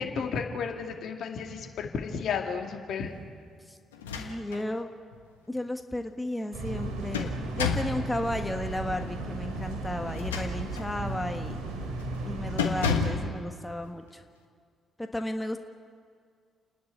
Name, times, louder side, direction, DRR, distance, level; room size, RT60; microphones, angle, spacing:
voice 1, 0.0-3.1, left 6 dB, 60° left, 3 dB, 2.2 m, -33 dB
sound 1, 3.9-4.7 5.1-5.2 6.7-8.0 10.0-10.9 11.4-11.7 12.0-12.2 12.6-13.3, left 5 dB, 90° left, 1.4 m, -31 dB
voice 2, 4.2-4.9 5.5-11.6 12.3-14.2 15.0-15.6, left 1 dB, 10° left, 6 dB, 1.5 m, -34 dB
sound 2, 6.5-13.1, right 2 dB, 70° right, 3.1 m, -35 dB
30.0 x 10.5 x 9.9 m, 2.1 s
hypercardioid pair, 45°, 0 cm